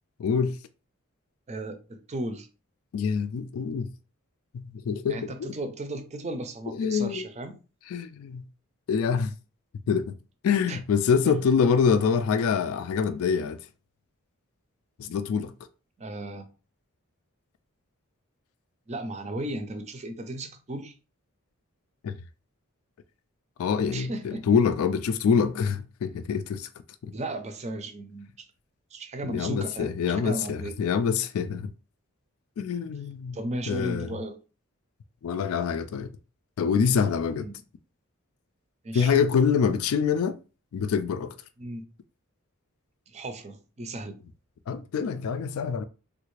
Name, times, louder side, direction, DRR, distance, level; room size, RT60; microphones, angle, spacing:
voice 1, 0.2-0.6 2.9-3.9 4.5-5.3 6.7-7.3 7.9-8.4 8.9-9.3 9.9-10.1 10.4-13.6 15.0-15.5 22.0-22.1 23.6-26.7 27.0-27.1 29.3-31.7 32.6-33.4 33.7-34.1 35.2-36.1 36.6-37.5 38.9-40.4 40.7-41.4 44.7-45.8, left 6 dB, 70° left, 0.3 m, -25 dB
voice 2, 1.5-2.5 5.1-7.5 10.7-10.8 11.2-11.4 16.0-16.4 18.9-20.9 23.9-24.5 27.1-28.3 28.9-30.7 33.3-34.4 37.3-37.5 38.8-39.1 41.6-41.8 43.1-44.2, right 1 dB, 30° right, 0.5 m, -35 dB
3.3 x 2.4 x 3.1 m
head